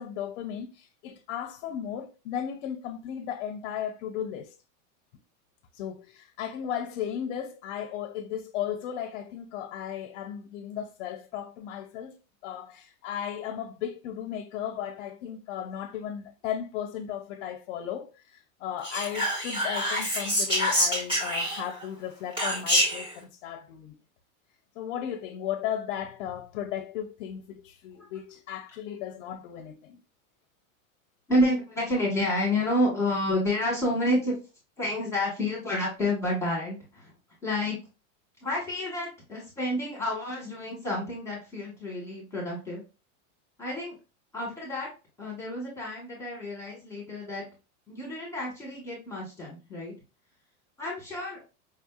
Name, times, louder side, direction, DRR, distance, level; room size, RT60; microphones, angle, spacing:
voice 1, 0.0-4.5 5.7-12.2 12.4-23.9 24.8-30.0, left 9 dB, 55° left, 0.7 m, -35 dB
Whispering, 18.8-21.8 22.4-23.1, equal, 10° right, 1.3 m, -26 dB
voice 2, 31.3-34.4 34.8-37.1 37.4-37.8 38.4-42.8 43.6-43.9 44.3-44.9 45.2-47.5 47.9-49.9 50.8-51.4, left 1 dB, 5° left, 1.3 m, -29 dB
5.1 x 2.7 x 2.3 m
supercardioid pair, 155°, 41 cm